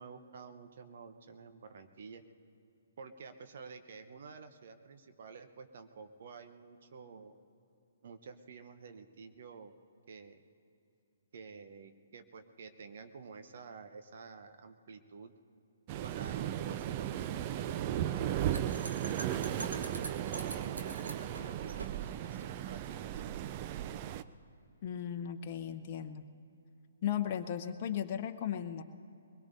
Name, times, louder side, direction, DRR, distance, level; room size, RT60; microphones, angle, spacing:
voice 1, 0.0-2.2 3.0-7.3 8.0-9.7 10.1-10.4 11.3-15.3 16.0-19.1 19.4-20.1 20.5-23.2, right 5 dB, 55° right, 8 dB, 0.9 m, -51 dB
Waves surf, 15.9-24.2, right 11 dB, 35° right, 0.4 m, -36 dB
sound 1, 18.5-22.9, right 2 dB, 75° right, 1.5 m, -45 dB
voice 2, 24.8-26.2 27.0-28.8, left 9 dB, 40° left, 7 dB, 0.8 m, -36 dB
22.5 x 21.0 x 2.7 m, 2.6 s
figure-of-eight pair, 130°, 0 cm